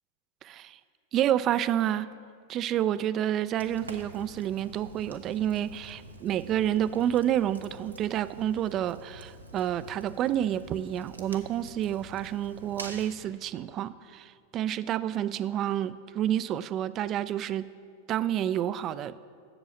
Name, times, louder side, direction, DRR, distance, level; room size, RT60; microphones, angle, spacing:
voice 1, 0.4-0.8 1.1-2.1 2.5-17.7 18.1-19.2, right 11 dB, 35° right, 16 dB, 0.3 m, -29 dB
Fire, 3.6-13.2, right 2 dB, 90° right, 0.8 m, -47 dB
8.0 x 7.0 x 7.1 m, 2.2 s
figure-of-eight pair, 95°, 0 cm